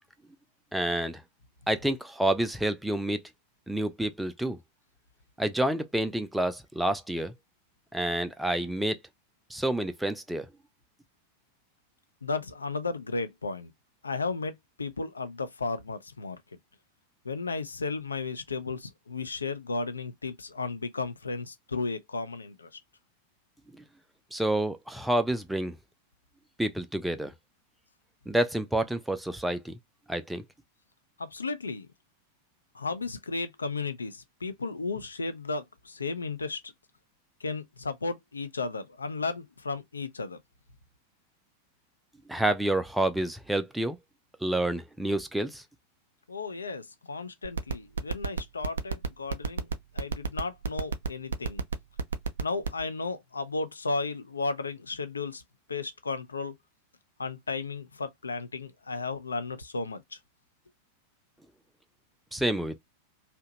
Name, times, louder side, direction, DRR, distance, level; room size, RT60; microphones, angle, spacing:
voice 1, 0.7-1.2 1.7-3.2 3.7-4.6 5.4-7.3 7.9-9.0 9.5-10.5 23.7-23.8 24.3-25.8 26.6-27.3 28.3-29.8 30.1-30.4 42.3-44.0 44.4-45.6 62.3-62.8, right 1 dB, 5° right, 0.4 m, -28 dB
voice 2, 12.2-13.7 14.0-16.4 17.2-22.8 31.2-31.9 32.7-36.7 37.4-40.4 46.3-49.7 49.9-51.6 52.4-55.4 55.7-56.5 57.2-60.2, left 3 dB, 75° left, 0.5 m, -34 dB
sound 1, 47.4-52.8, right 5 dB, 70° right, 0.4 m, -28 dB
2.7 x 2.2 x 2.8 m
figure-of-eight pair, 90°, 0 cm